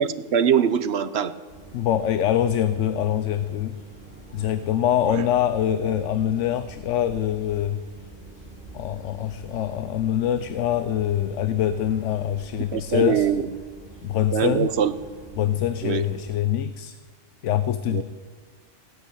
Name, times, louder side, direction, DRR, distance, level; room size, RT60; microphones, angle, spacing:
voice 1, 0.0-1.4 5.1-5.3 12.7-13.4 14.3-14.9 15.8-16.0 17.9-18.0, right 8 dB, 65° right, 13 dB, 1.1 m, -22 dB
sound 1, 1.5-16.3, right 2 dB, 50° left, 6.0 m, -45 dB
voice 2, 1.7-3.8 4.3-7.8 8.7-13.3 14.0-14.7 15.4-17.0 17.4-18.0, left 10 dB, 80° left, 13 dB, 1.0 m, -24 dB
17.0 x 9.2 x 9.2 m, 1.6 s
omnidirectional pair, 1.2 m